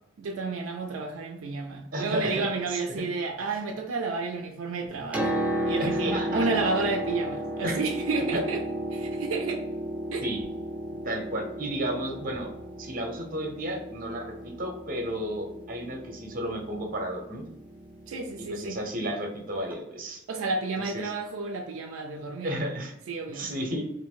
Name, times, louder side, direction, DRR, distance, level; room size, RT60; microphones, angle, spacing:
voice 1, 0.2-8.6 8.9-9.6 10.1-10.2 18.1-18.8 20.3-22.6 23.1-23.5, right 3 dB, 80° right, 0.4 m, -31 dB
voice 2, 1.9-2.4 2.7-2.8 3.4-3.6 5.8-6.5 7.6-7.8 8.3-8.4 10.2-10.4 11.0-12.5 12.8-17.4 18.4-20.2 20.8-21.1 22.4-23.0 23.3-23.9, right 1 dB, 45° right, 0.7 m, -32 dB
Piano, 4.9-18.6 19.7-19.8, right 1 dB, 5° right, 0.6 m, -34 dB
2.6 x 2.6 x 3.6 m
head